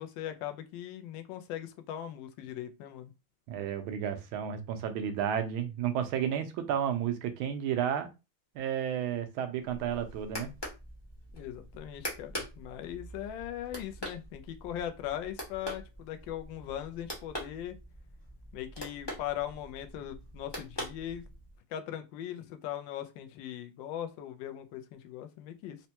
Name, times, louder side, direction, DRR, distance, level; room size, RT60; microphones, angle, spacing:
voice 1, 0.0-3.1 11.3-17.8 18.5-21.2 21.7-25.8, left 11 dB, 75° left, 1.2 m, -39 dB
voice 2, 3.5-8.1 8.5-10.5, right 9 dB, 80° right, 1.4 m, -32 dB
sound 1, 9.6-21.6, equal, 35° left, 0.4 m, -44 dB
4.2 x 2.2 x 2.8 m
omnidirectional pair, 2.3 m